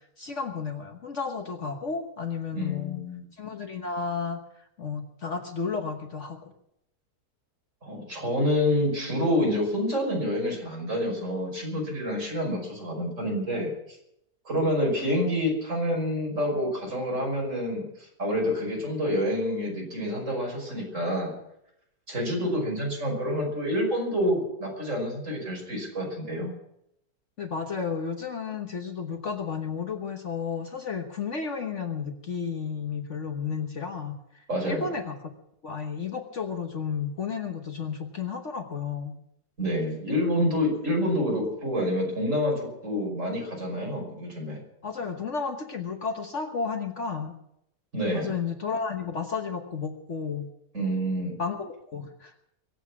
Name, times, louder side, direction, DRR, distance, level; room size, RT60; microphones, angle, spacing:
voice 1, 0.0-3.0 3.4-4.4 4.8-6.5 27.4-35.1 35.6-39.1 44.8-47.3 48.1-50.5 51.4-52.3, left 5 dB, 50° left, 5 dB, 1.4 m, -32 dB
voice 2, 2.5-3.2 7.8-14.0 14.4-21.3 22.1-26.5 34.5-34.9 39.6-44.6 47.9-48.3 50.7-51.3, equal, 45° right, 0 dB, 6.0 m, -28 dB
23.5 x 8.2 x 7.2 m, 0.79 s
omnidirectional pair, 1.7 m